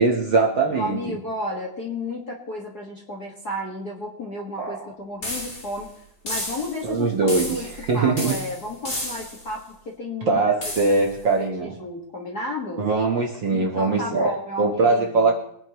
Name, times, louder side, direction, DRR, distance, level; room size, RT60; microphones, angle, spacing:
voice 1, 0.0-1.1 4.6-4.9 6.8-7.6 7.9-8.4 10.3-11.7 12.8-15.3, right 3 dB, 50° right, 1 dB, 1.6 m, -21 dB
voice 2, 0.7-5.9 6.2-7.7 7.9-10.4 10.8-11.1 11.4-12.8 13.5-15.3, left 1 dB, 40° left, -3 dB, 1.9 m, -33 dB
sound 1, 5.2-5.8 6.3-6.9 7.3-7.9 8.2-9.5 10.6-11.1, left 1 dB, 20° left, 2.6 m, -32 dB
23.5 x 10.5 x 3.1 m, 0.70 s
omnidirectional pair, 3.4 m